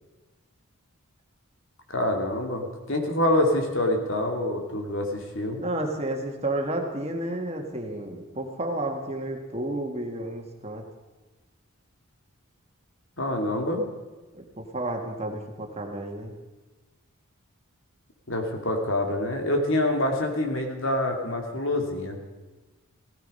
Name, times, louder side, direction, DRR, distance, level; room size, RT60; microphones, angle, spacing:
voice 1, 1.9-5.6 13.2-13.8 18.3-22.2, left 1 dB, 60° left, 3 dB, 2.6 m, -26 dB
voice 2, 5.6-10.8 14.3-16.3, right 1 dB, 30° right, 2 dB, 1.9 m, -31 dB
16.5 x 15.5 x 5.5 m, 1.2 s
head